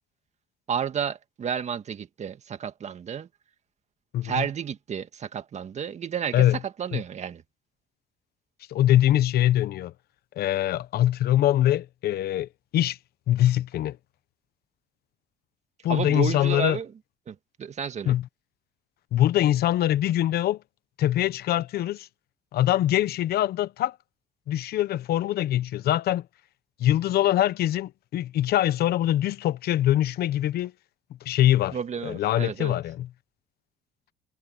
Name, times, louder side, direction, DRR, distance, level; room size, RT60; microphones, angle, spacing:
voice 1, 0.7-3.3 4.2-7.4 15.9-16.9 17.3-18.1 31.7-32.7, right 8 dB, 40° right, 1.8 m, -31 dB
voice 2, 4.1-4.4 6.3-6.6 6.9-7.0 8.7-9.9 10.4-13.0 13.3-14.0 15.8-16.8 18.1-18.2 19.1-20.6 21.0-22.1 22.5-24.0 24.5-26.3 26.8-30.7 31.2-31.8 32.0-33.1, left 13 dB, 65° left, 1.0 m, -23 dB
cardioid pair, 110°, 17 cm